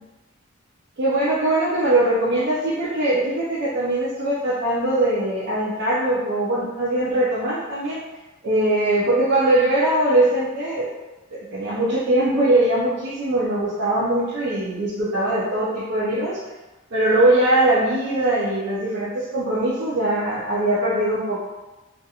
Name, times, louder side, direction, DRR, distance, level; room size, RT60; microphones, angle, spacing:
voice 1, 1.0-8.0 8.4-10.9 11.3-16.4 16.9-21.4, right 1 dB, 55° right, -8 dB, 0.4 m, -21 dB
2.8 x 2.4 x 2.3 m, 1.1 s
head